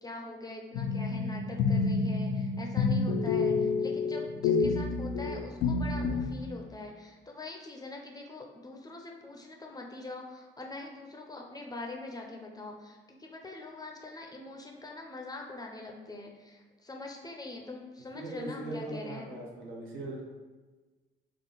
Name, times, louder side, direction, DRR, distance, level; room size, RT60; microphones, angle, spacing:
voice 1, 0.0-19.3, left 2 dB, 20° left, 1 dB, 0.5 m, -43 dB
sound 1, 0.7-6.3, left 4 dB, 90° left, 0.5 m, -28 dB
voice 2, 18.1-20.2, right 2 dB, 80° right, -2 dB, 0.8 m, -39 dB
3.7 x 2.0 x 3.9 m, 1.3 s
cardioid pair, 90°, 20 cm